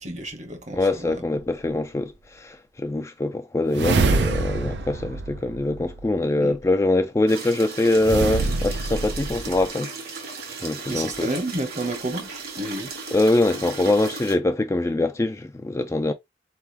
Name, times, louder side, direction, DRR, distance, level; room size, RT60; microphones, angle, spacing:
voice 1, 0.0-1.2 6.4-6.5 10.9-12.9, right 1 dB, 45° right, 1.0 m, -31 dB
voice 2, 0.7-9.9 10.6-11.3 13.1-16.1, left 2 dB, 15° left, 0.3 m, -23 dB
sound 1, 3.7-6.2 8.0-9.7, right 3 dB, 75° right, 0.6 m, -26 dB
sound 2, 7.3-14.4, right 4 dB, 60° right, 1.6 m, -36 dB
4.3 x 3.5 x 2.8 m
head